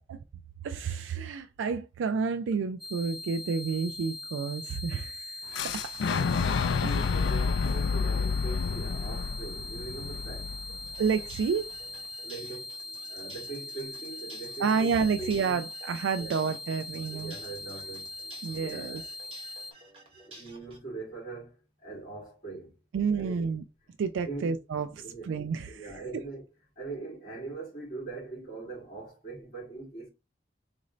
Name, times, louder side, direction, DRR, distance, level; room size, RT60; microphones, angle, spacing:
voice 1, 0.6-5.4 5.6-5.9 11.0-11.7 14.6-17.3 18.4-19.0 22.9-23.6 24.0-25.9, right 5 dB, 90° right, 0.3 m, -30 dB
sound 1, 2.8-19.7, left 2 dB, ahead, 0.4 m, -41 dB
Boom, 5.5-11.4, left 5 dB, 85° left, 0.3 m, -29 dB
voice 2, 6.0-6.4 6.8-10.5 12.2-12.7 13.1-15.6 16.2-16.4 17.1-18.1 18.6-19.3 20.2-22.8 23.1-23.5 24.2-24.5 25.0-25.4 25.7-26.4 26.8-30.1, right 3 dB, 30° left, 2.5 m, -42 dB
sound 2, 10.8-20.8, right 1 dB, 30° right, 1.2 m, -53 dB
3.9 x 2.6 x 3.1 m
head